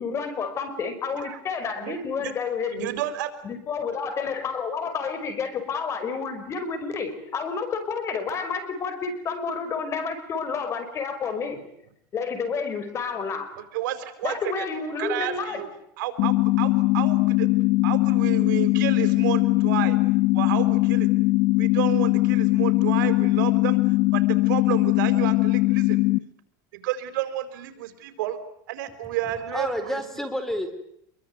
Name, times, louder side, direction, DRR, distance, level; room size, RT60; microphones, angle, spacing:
voice 1, 0.0-2.9 3.4-11.6 12.1-13.5 14.2-15.6, left 5 dB, 25° left, 10 dB, 5.4 m, -30 dB
voice 2, 1.8-2.3 2.7-3.3 13.7-14.7 15.0-15.7 16.0-17.5 17.8-20.0 20.3-21.1 21.6-23.8 24.1-26.0 26.7-28.4 28.7-30.0, right 13 dB, 85° right, 10 dB, 4.5 m, -31 dB
sound 1, 16.2-26.2, left 20 dB, 55° left, 1.3 m, -21 dB
voice 3, 29.3-30.7, equal, 5° left, 10 dB, 4.1 m, -30 dB
26.5 x 23.5 x 9.5 m, 0.74 s
supercardioid pair, 155°, 10 cm